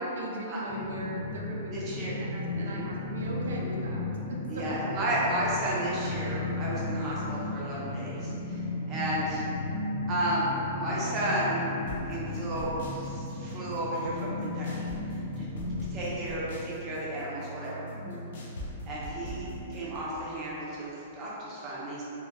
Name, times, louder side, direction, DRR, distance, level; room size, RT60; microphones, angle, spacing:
voice 1, 0.0-4.8 9.1-9.4 17.9-18.2, right 1 dB, 80° right, -2 dB, 0.4 m, -38 dB
sound 1, 0.7-15.9, left 2 dB, 75° left, 0.8 m, -35 dB
voice 2, 1.7-2.1 2.5-2.9 4.5-9.4 10.1-11.6 12.1-14.8 15.4-15.5 15.9-17.9 18.9-22.0, right 1 dB, 20° right, -7 dB, 0.4 m, -33 dB
sound 2, 9.2-20.0, equal, 50° left, 0.4 m, -42 dB
2.8 x 2.0 x 2.5 m, 2.9 s
hypercardioid pair, 180°, 0 cm